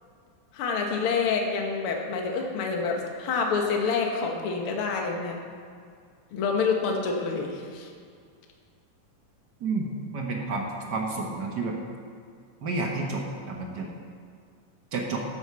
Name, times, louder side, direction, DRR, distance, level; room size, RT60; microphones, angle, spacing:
voice 1, 0.5-5.4 6.3-7.9, left 5 dB, 55° left, 1 dB, 1.9 m, -27 dB
voice 2, 9.6-11.8 12.6-13.9 14.9-15.2, right 3 dB, 60° right, 0 dB, 1.1 m, -30 dB
12.0 x 8.1 x 6.9 m, 2.1 s
omnidirectional pair, 3.7 m